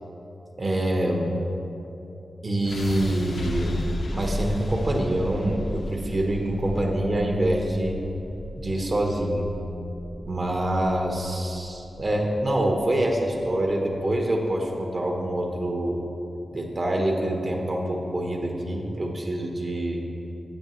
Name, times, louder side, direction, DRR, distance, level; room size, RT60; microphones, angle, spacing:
voice 1, 0.6-1.3 2.4-3.8 4.1-8.0 8.6-9.5 10.3-16.0 16.5-20.0, right 1 dB, 40° right, 1 dB, 1.1 m, -25 dB
sound 1, 2.7-14.7, left 1 dB, 75° left, 0.9 m, -35 dB
13.5 x 8.2 x 3.1 m, 2.9 s
wide cardioid pair, 125°, 0 cm